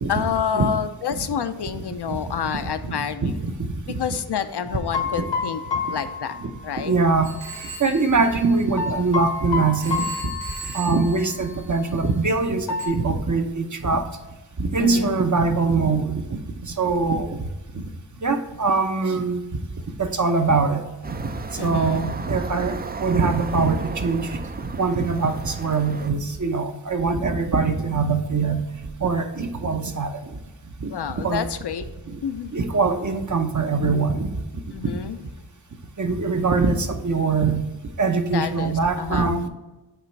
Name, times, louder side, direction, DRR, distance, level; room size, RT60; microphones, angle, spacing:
voice 1, 0.1-3.5 3.9-5.6 5.9-6.4 6.6-7.0 14.8-15.2 21.6-22.1 30.9-31.9 32.2-32.6 34.7-35.2 38.3-39.4, left 8 dB, 65° left, 10 dB, 0.5 m, -28 dB
voice 2, 2.9-3.3 3.6-3.7 5.9-6.0 6.4-6.5 6.9-7.3 7.8-10.3 10.7-14.1 14.6-16.4 16.8-17.4 17.7-17.9 18.2-19.6 20.0-21.2 21.6-24.3 24.8-28.7 29.0-30.1 30.8-30.9 31.2-31.5 32.1-32.2 32.5-34.4 36.0-37.7 38.0-39.5, right 4 dB, 45° right, 6 dB, 0.7 m, -23 dB
sound 1, 4.7-7.3 8.8-11.0 11.3-11.5 12.7-12.9, left 5 dB, 85° left, 1.3 m, -29 dB
Telephone, 7.2-9.4 9.8-12.1 12.8-12.9, right 4 dB, 90° right, 1.2 m, -39 dB
sound 2, 21.0-26.1, right 4 dB, 25° right, 0.4 m, -34 dB
8.2 x 3.1 x 4.5 m, 1.1 s
wide cardioid pair, 65°, 43 cm